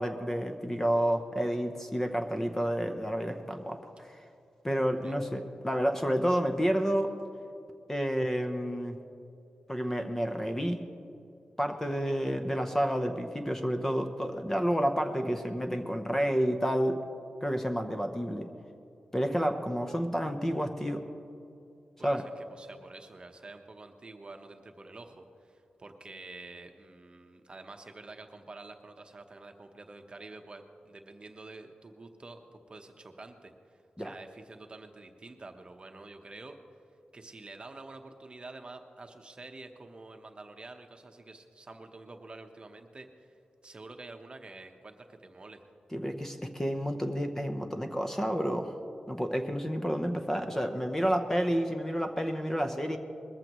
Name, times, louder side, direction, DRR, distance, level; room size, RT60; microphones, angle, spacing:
voice 1, 0.0-4.2 4.6-7.1 7.9-8.9 9.7-10.8 11.6-17.0 17.4-18.5 19.1-21.0 22.0-22.2 34.0-34.1 45.9-48.7 49.1-53.0, equal, 10° left, 5 dB, 0.8 m, -30 dB
voice 2, 4.8-5.1 22.0-36.6 37.1-43.3 43.6-45.6, right 2 dB, 35° right, 5 dB, 1.0 m, -48 dB
21.0 x 14.5 x 3.1 m, 2.7 s
wide cardioid pair, 120°, 3 cm